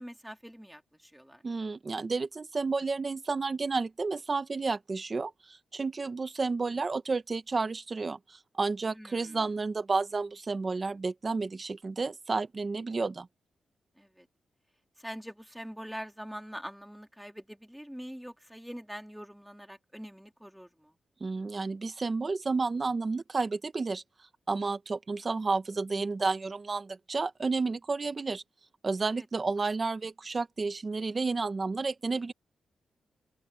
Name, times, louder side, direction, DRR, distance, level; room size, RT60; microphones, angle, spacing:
voice 1, 0.0-1.4 8.9-9.5 14.0-14.3 15.0-20.9 29.1-29.3, equal, ahead, 2.2 m, -44 dB
voice 2, 1.4-13.3 21.2-24.0 24.5-28.4 28.8-32.3, right 4 dB, 25° right, 0.9 m, -31 dB
wide cardioid pair, 165°, 0 cm